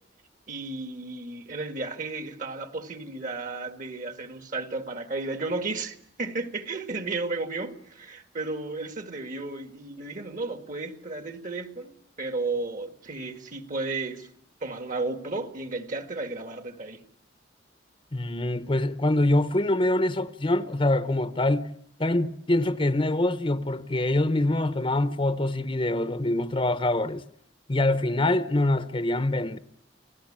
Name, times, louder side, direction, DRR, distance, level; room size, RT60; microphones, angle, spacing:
voice 1, 0.5-14.3 14.6-17.0, right 3 dB, 45° right, 1.9 m, -33 dB
voice 2, 18.1-21.7 22.0-27.2 27.7-29.6, left 1 dB, 30° left, 0.9 m, -24 dB
29.5 x 18.0 x 8.8 m
head